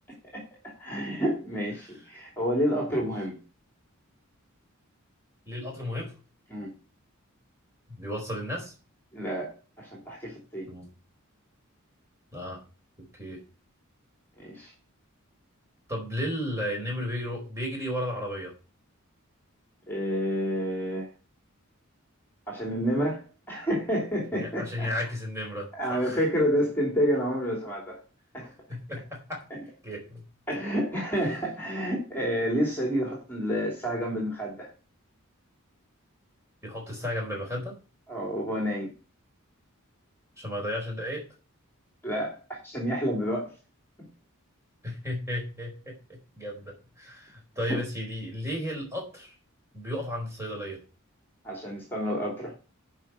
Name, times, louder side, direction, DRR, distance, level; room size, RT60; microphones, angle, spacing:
voice 1, 0.3-3.4 6.5-6.7 9.1-10.7 14.4-14.7 19.9-21.1 22.5-24.9 25.7-28.0 28.3-28.5 30.5-34.7 38.1-38.9 42.0-43.5 47.7-47.8 51.4-52.5, equal, 10° left, -1 dB, 2.8 m, -29 dB
voice 2, 5.5-6.1 8.0-8.7 10.7-10.9 12.3-12.6 13.2-13.4 15.9-18.5 24.3-26.2 28.7-29.4 29.8-30.2 36.6-37.8 40.4-41.2 44.8-49.4 49.7-50.8, equal, 15° right, 0 dB, 4.3 m, -34 dB
8.9 x 5.5 x 8.0 m, 0.34 s
head